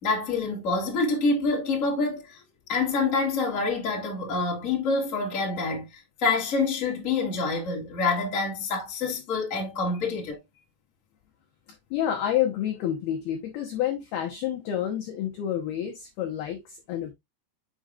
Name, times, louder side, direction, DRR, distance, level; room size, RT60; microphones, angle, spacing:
voice 1, 0.0-2.4 2.7-10.4, left 3 dB, 25° left, 1.8 m, -27 dB
voice 2, 11.9-17.1, left 10 dB, 75° left, 2.4 m, -29 dB
7.8 x 6.3 x 2.5 m
omnidirectional pair, 5.8 m